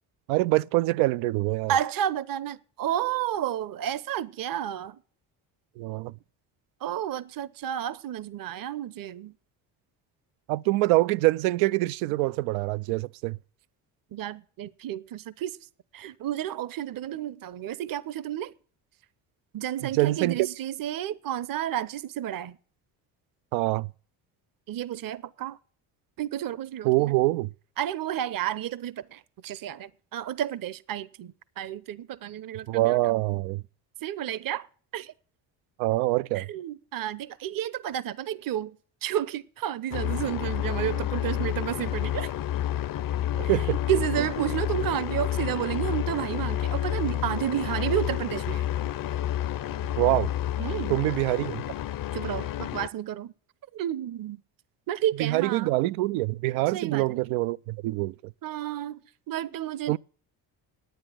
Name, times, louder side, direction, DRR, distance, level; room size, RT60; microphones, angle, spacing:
voice 1, 0.3-1.7 5.8-6.1 10.5-13.4 19.8-20.5 23.5-23.9 26.8-27.5 32.7-33.6 35.8-36.5 43.5-43.8 50.0-50.3 50.9-51.6 55.2-58.3 59.9-60.0, right 19 dB, 85° right, 0.5 m, -25 dB
voice 2, 1.7-5.0 6.8-9.3 14.1-15.5 15.9-18.5 19.5-22.6 24.7-25.6 26.2-26.9 27.8-33.1 34.0-34.7 34.9-35.1 36.3-38.8 39.0-42.3 43.9-48.6 50.6-51.0 52.1-53.3 53.7-54.4 54.9-55.7 56.7-57.2 58.4-59.0 59.3-60.0, right 11 dB, 45° right, 0.8 m, -31 dB
sound 1, 39.9-52.9, left 12 dB, 45° left, 0.7 m, -30 dB
10.5 x 9.0 x 7.6 m
supercardioid pair, 70°, 47 cm